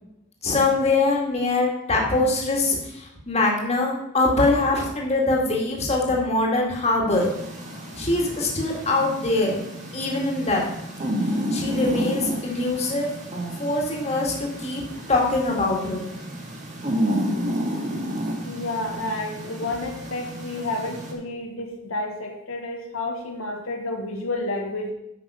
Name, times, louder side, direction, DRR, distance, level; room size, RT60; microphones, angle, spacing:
voice 1, 0.4-7.3 8.0-9.6 9.9-10.6 11.5-13.1 13.6-14.8 15.1-16.0, left 2 dB, 30° left, -1 dB, 2.0 m, -23 dB
sound 1, 7.1-21.1, equal, 35° right, 1.8 m, -31 dB
voice 2, 18.4-24.9, left 2 dB, 85° left, 1 dB, 1.5 m, -30 dB
9.3 x 6.0 x 5.5 m, 0.84 s
head